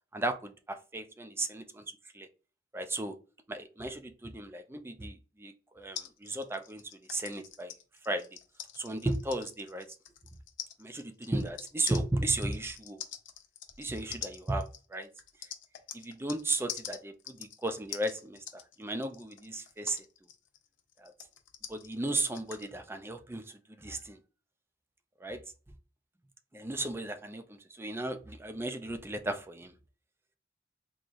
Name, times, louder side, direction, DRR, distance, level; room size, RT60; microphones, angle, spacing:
voice 1, 0.1-2.3 2.7-3.2 3.5-7.7 8.1-8.2 8.8-9.9 10.8-13.0 13.8-15.1 15.9-20.0 21.0-21.1 21.7-24.2 25.2-25.4 26.5-29.7, right 2 dB, 15° right, 8 dB, 0.4 m, -35 dB
sound 1, 5.9-16.4 16.7-22.7, left 10 dB, 85° left, 0.6 m, -45 dB
3.8 x 3.0 x 2.5 m, 0.35 s
head